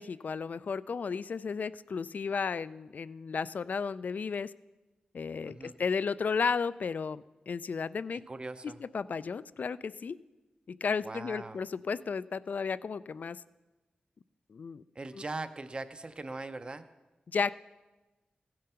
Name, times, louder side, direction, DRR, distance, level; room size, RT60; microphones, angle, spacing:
voice 1, 0.0-4.5 5.1-8.2 8.8-10.2 10.7-13.4 14.5-14.8 17.3-17.6, left 5 dB, 65° left, 17 dB, 0.3 m, -33 dB
voice 2, 5.4-5.8 8.1-8.8 11.0-11.7 14.9-16.9, right 2 dB, 35° right, 10 dB, 0.6 m, -41 dB
16.0 x 7.6 x 5.6 m, 1.1 s
wide cardioid pair, 110°, 3 cm